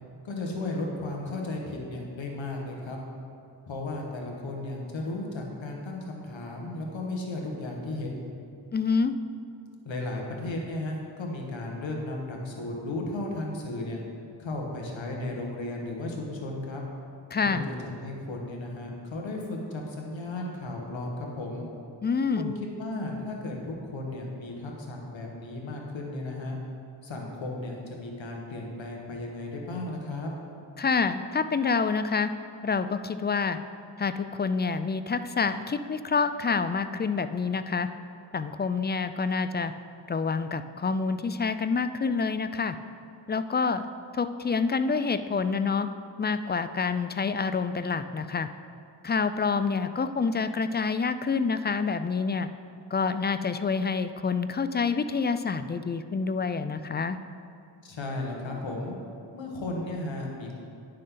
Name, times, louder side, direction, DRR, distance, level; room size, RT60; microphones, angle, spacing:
voice 1, 0.2-3.0 3.7-8.1 9.9-14.0 14.4-16.8 17.4-21.7 22.3-26.6 27.0-30.3 57.8-58.9 59.3-60.5, left 2 dB, 70° left, 0 dB, 1.6 m, -35 dB
voice 2, 8.7-9.1 17.3-17.7 22.0-22.5 30.8-32.3 32.6-33.6 34.0-37.9 38.3-39.7 40.1-42.8 43.3-43.9 44.1-45.9 46.2-48.5 49.0-52.5 52.9-57.2, left 5 dB, 25° left, 11 dB, 0.3 m, -27 dB
9.7 x 6.6 x 3.9 m, 2.6 s
cardioid pair, 55°, 47 cm